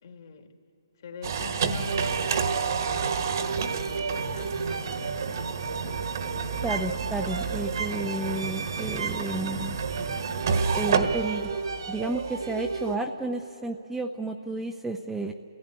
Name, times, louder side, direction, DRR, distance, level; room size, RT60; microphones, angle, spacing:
voice 1, 0.0-0.5 1.0-2.2 2.5-4.6, left 6 dB, 45° left, 4 dB, 2.4 m, -44 dB
sound 1, 1.2-12.9, right 5 dB, 50° right, 1.5 m, -30 dB
sound 2, 1.8-13.1, right 4 dB, 65° right, 1.6 m, -34 dB
voice 2, 6.6-9.8 10.7-11.5 11.9-15.3, right 2 dB, 5° right, 3 dB, 0.6 m, -32 dB
29.5 x 16.0 x 9.6 m, 2.9 s
hypercardioid pair, 160°, 3 cm